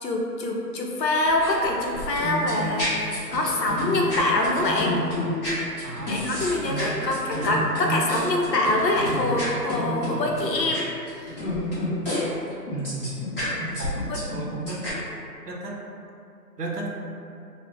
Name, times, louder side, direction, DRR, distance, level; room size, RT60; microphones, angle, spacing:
voice 1, 0.0-5.0 6.1-10.9 14.1-14.2, left 2 dB, 80° left, 0 dB, 0.7 m, -25 dB
sound 1, 1.3-12.2 12.5-14.9, left 1 dB, 35° left, 0.9 m, -29 dB
voice 2, 5.8-7.0 12.7-13.2 13.8-15.0 15.4-15.8 16.6-17.0, right 2 dB, 70° right, -1 dB, 0.6 m, -34 dB
2.4 x 2.1 x 3.6 m, 2.5 s
figure-of-eight pair, 170°, 50 cm